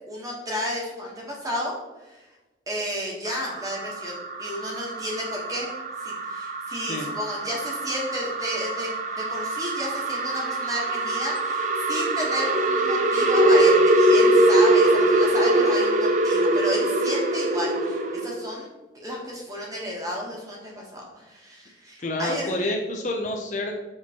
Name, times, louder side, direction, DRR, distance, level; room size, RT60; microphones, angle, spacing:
voice 1, 0.1-1.8 2.0-2.2 2.7-5.7 6.0-18.7 18.9-22.6, equal, 20° right, -3 dB, 1.0 m, -32 dB
sound 1, 3.3-18.4, right 1 dB, 40° right, 0.4 m, -23 dB
voice 2, 22.0-23.8, left 1 dB, 40° left, 2 dB, 0.5 m, -28 dB
6.1 x 3.0 x 2.8 m, 1.1 s
head